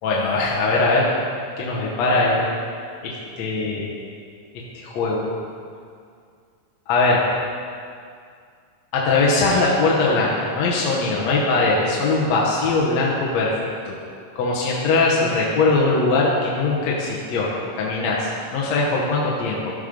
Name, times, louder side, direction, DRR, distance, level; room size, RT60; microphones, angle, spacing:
voice 1, 0.0-1.1 1.6-2.5 3.0-3.9 4.5-5.3 6.9-7.2 8.9-13.5 13.9-14.0 14.4-19.7, left 3 dB, 65° left, -5 dB, 2.0 m, -21 dB
14.0 x 5.2 x 5.1 m, 2.3 s
omnidirectional pair, 3.8 m